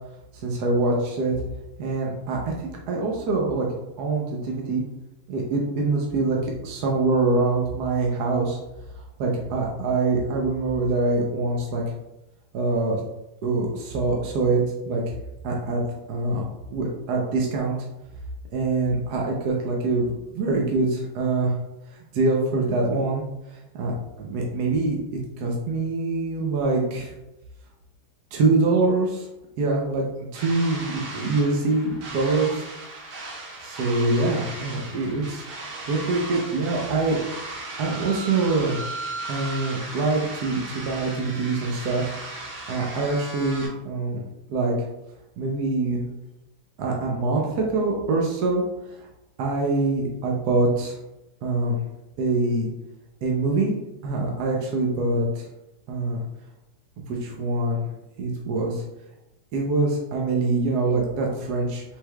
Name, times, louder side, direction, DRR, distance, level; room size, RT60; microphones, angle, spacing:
voice 1, 0.3-1.4 1.8-3.7 4.0-4.8 5.3-8.6 9.2-11.8 12.5-13.0 13.4-15.0 15.4-15.8 16.1-16.4 16.7-17.8 18.5-21.5 22.1-23.2 23.5-25.0 25.4-27.1 28.3-29.3 29.6-32.6 33.6-37.2 37.8-38.8 39.3-42.0 42.7-44.2 44.5-44.7 45.4-46.0 46.8-48.6 48.9-49.1 49.4-51.0 51.4-51.8 52.2-52.7 53.2-55.4 55.9-56.2 57.1-57.8 58.2-58.8 59.5-61.8, right 3 dB, 65° right, -1 dB, 1.0 m, -24 dB
sound 1, 30.3-43.7, right 2 dB, 85° right, 1.8 m, -36 dB
5.7 x 3.7 x 2.2 m, 0.94 s
omnidirectional pair, 2.2 m